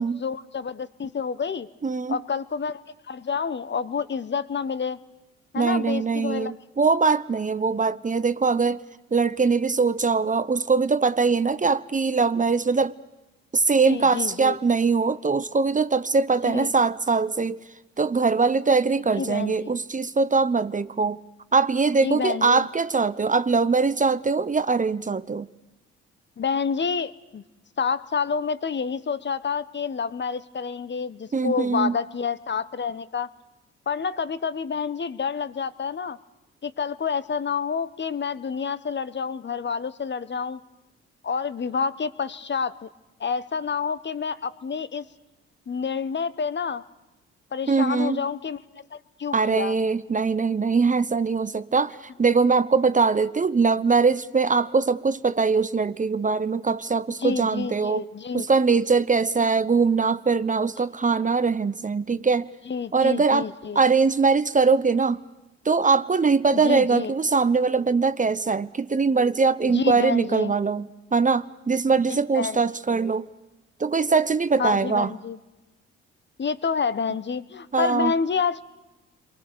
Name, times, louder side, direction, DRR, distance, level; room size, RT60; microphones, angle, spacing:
voice 1, 0.0-1.7 2.1-2.8 3.1-5.0 5.5-6.5 13.9-14.6 16.4-16.7 19.1-19.8 22.0-22.7 26.4-27.4 27.8-33.3 33.9-36.2 36.6-40.6 41.2-42.9 43.2-45.0 45.7-46.8 47.5-48.6 48.9-49.7 57.2-58.4 59.4-59.5 62.7-63.8 66.5-67.1 69.7-70.5 72.1-72.6 74.6-75.4 76.4-78.6, left 6 dB, 35° left, 1.2 m, -28 dB
voice 2, 1.8-2.2 5.6-8.8 9.1-13.0 13.5-17.6 18.0-21.2 21.5-25.5 31.3-31.9 47.7-48.2 49.3-58.0 58.3-62.5 62.9-63.5 63.7-65.2 65.6-73.3 73.8-75.1 77.7-78.1, right 4 dB, 25° right, 0.9 m, -22 dB
30.0 x 23.5 x 6.9 m
hypercardioid pair, 50°, 31 cm